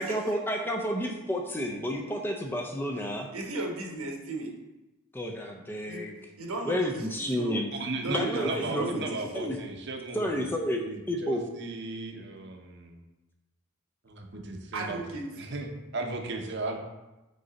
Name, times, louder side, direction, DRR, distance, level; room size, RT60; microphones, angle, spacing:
voice 1, 0.0-3.3 5.1-6.2 6.7-7.7 8.1-9.1 9.3-9.6 10.1-11.4, equal, 10° left, 2 dB, 0.4 m, -31 dB
voice 2, 3.3-4.6 5.8-6.0 6.4-7.5 8.0-9.4 14.7-15.2, right 2 dB, 80° right, 0 dB, 1.1 m, -35 dB
voice 3, 7.7-10.4 10.7-13.0 14.0-15.0 15.3-16.8, right 2 dB, 50° right, 3 dB, 0.7 m, -36 dB
6.5 x 3.8 x 4.0 m, 1.0 s
head